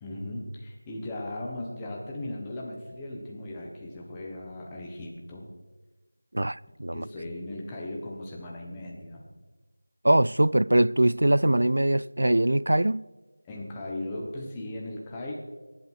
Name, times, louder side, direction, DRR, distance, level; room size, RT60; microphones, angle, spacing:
voice 1, 0.0-5.5 6.9-9.2 13.4-15.3, left 1 dB, 5° left, 1.2 m, -37 dB
voice 2, 6.3-7.0 10.0-13.0, right 1 dB, 70° right, 0.4 m, -22 dB
21.5 x 11.0 x 4.7 m
figure-of-eight pair, 180°, 0 cm